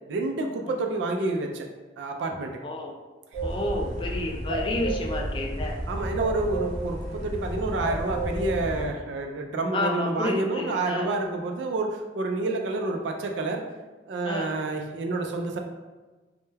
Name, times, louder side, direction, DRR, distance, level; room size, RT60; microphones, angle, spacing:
voice 1, 0.1-1.6 2.0-2.5 5.9-13.6 14.1-15.6, right 2 dB, 90° right, 3 dB, 0.3 m, -28 dB
voice 2, 2.6-2.9 3.4-5.8 9.7-11.1 14.2-14.5, left 2 dB, 30° left, 0 dB, 0.3 m, -30 dB
sound 1, 3.3-8.9, right 1 dB, 40° right, 0.7 m, -31 dB
2.2 x 2.1 x 3.1 m, 1.2 s
head